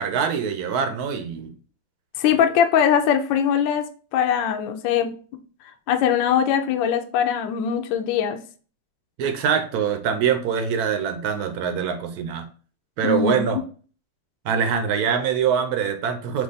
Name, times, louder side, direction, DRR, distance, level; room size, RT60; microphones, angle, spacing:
voice 1, 0.0-1.5 9.2-12.5 13.0-13.6 14.4-16.4, right 7 dB, 75° right, 8 dB, 0.8 m, -24 dB
voice 2, 2.2-5.1 5.9-8.4 13.0-13.6, left 8 dB, 75° left, 6 dB, 1.1 m, -21 dB
5.0 x 2.4 x 3.9 m, 0.40 s
omnidirectional pair, 2.3 m